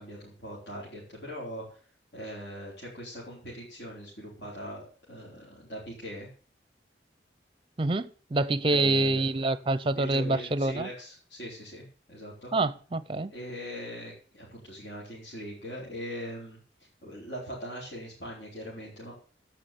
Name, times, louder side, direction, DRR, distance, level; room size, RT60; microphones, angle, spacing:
voice 1, 0.0-1.8 2.1-6.3 8.7-9.3 9.9-12.5 13.3-16.6 17.0-19.1, equal, 65° left, 4.4 m, -41 dB
voice 2, 7.8-10.9 12.5-13.3, right 2 dB, 30° right, 0.6 m, -26 dB
16.0 x 6.0 x 6.9 m
head